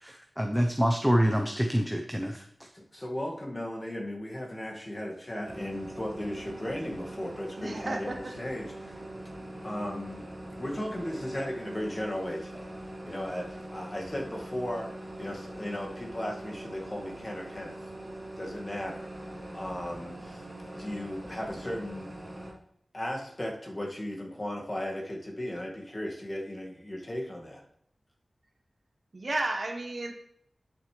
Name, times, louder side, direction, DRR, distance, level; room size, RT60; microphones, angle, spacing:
voice 1, 0.0-2.4, equal, ahead, 3 dB, 0.9 m, -26 dB
voice 2, 2.7-9.0 9.6-10.3 10.6-12.7 13.0-14.9 15.2-17.9 18.4-19.1 19.5-20.4 20.7-22.2 22.9-27.6, left 1 dB, 35° left, -1 dB, 2.1 m, -36 dB
sound 1, 5.4-22.5, right 1 dB, 35° right, 2.6 m, -42 dB
voice 3, 7.6-8.3 29.1-30.1, right 2 dB, 60° right, 3 dB, 1.4 m, -32 dB
10.5 x 6.3 x 3.3 m, 0.71 s
wide cardioid pair, 50°, 0 cm